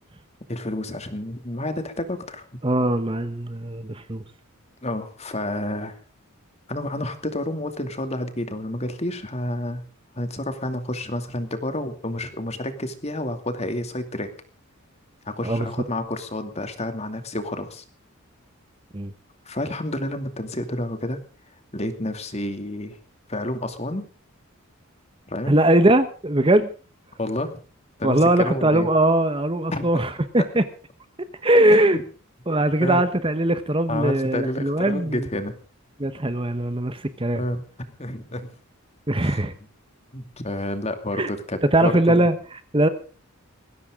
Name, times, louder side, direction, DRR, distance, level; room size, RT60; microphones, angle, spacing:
voice 1, 0.5-2.4 4.8-6.0 6.7-9.8 10.2-14.3 15.2-17.8 19.4-21.2 21.7-23.0 23.3-24.1 25.3-25.6 27.2-27.6 28.0-28.9 29.7-30.1 30.4-30.5 31.7-32.0 32.8-33.0 33.9-35.5 37.3-38.5 39.2-39.4 40.1-42.3, left 1 dB, 30° left, 8 dB, 2.5 m, -30 dB
voice 2, 2.6-4.2 15.4-15.7 18.9-19.1 25.5-26.7 28.0-30.6 31.4-32.0 32.5-35.2 36.0-37.4 39.1-39.5 41.2-41.3 41.7-42.4 42.7-42.9, right 1 dB, 25° right, 11 dB, 1.0 m, -20 dB
20.5 x 16.5 x 3.8 m, 0.38 s
head